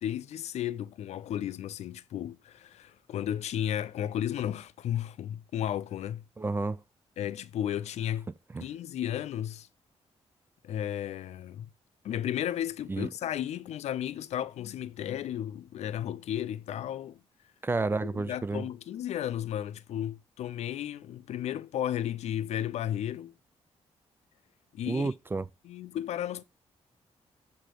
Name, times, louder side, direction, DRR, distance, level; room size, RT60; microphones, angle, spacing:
voice 1, 0.0-6.2 7.2-8.3 8.6-9.7 10.6-11.7 12.0-17.2 18.0-23.3 24.7-25.1 25.6-26.4, left 11 dB, 75° left, 0.4 m, -34 dB
voice 2, 6.4-6.8 8.5-8.6 12.9-13.1 17.6-18.6 24.9-25.5, right 3 dB, 20° right, 0.3 m, -30 dB
7.5 x 2.8 x 5.0 m
cardioid pair, 95°, 11 cm